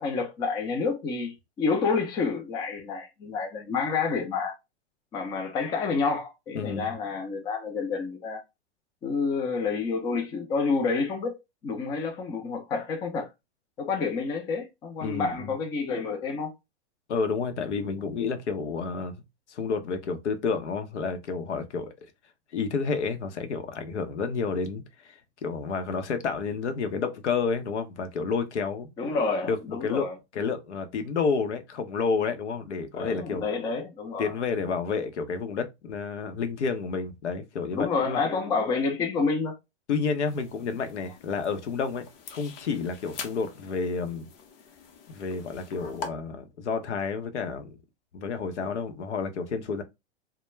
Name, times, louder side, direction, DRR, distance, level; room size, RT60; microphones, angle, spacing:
voice 1, 0.0-4.5 5.1-8.4 9.0-13.3 13.8-16.5 29.0-30.1 32.9-34.3 37.7-39.6, left 4 dB, 10° left, 0.3 m, -29 dB
voice 2, 6.5-6.9 15.0-15.5 17.1-19.2 19.5-22.1 22.5-28.9 29.5-30.1 30.3-33.4 34.2-38.2 39.9-42.0 42.3-44.3 45.1-47.8 48.1-49.8, left 5 dB, 85° left, 0.7 m, -30 dB
sound 1, 40.3-46.1, left 5 dB, 40° left, 0.7 m, -44 dB
2.2 x 2.1 x 3.1 m
hypercardioid pair, 125°, 34 cm